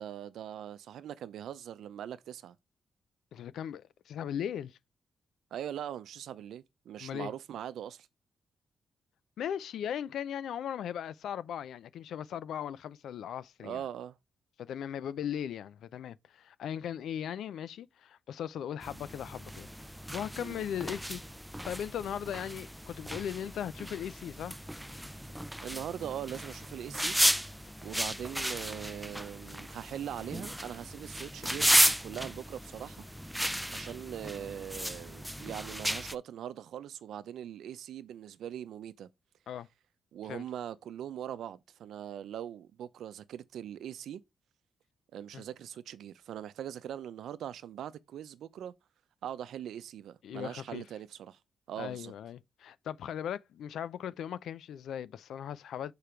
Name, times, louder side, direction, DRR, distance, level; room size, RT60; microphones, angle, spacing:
voice 1, 0.0-2.6 5.5-8.1 13.6-14.2 20.4-20.6 25.6-27.2 27.8-33.0 33.7-39.1 40.1-44.2 45.1-48.7 49.2-51.4 51.7-52.1, right 10 dB, 85° right, 0.7 m, -41 dB
voice 2, 3.3-4.8 7.0-7.3 9.4-13.8 14.6-21.2 21.6-24.5 39.5-39.7 40.3-40.4 45.3-45.4 50.2-50.8 51.8-55.9, left 9 dB, 80° left, 0.5 m, -38 dB
sound 1, 18.8-36.1, equal, ahead, 0.4 m, -34 dB
6.9 x 4.8 x 4.4 m
wide cardioid pair, 145°, 0 cm